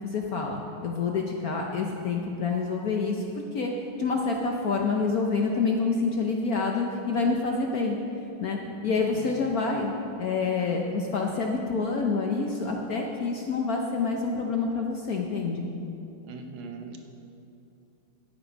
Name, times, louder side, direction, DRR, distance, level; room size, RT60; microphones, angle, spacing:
voice 1, 0.1-3.7 4.0-8.0 8.4-8.6 8.8-9.9 10.2-15.7, left 4 dB, 60° left, 1 dB, 1.0 m, -27 dB
voice 2, 16.2-17.0, right 5 dB, 75° right, 4 dB, 1.7 m, -40 dB
12.5 x 8.6 x 5.1 m, 2.8 s
omnidirectional pair, 2.3 m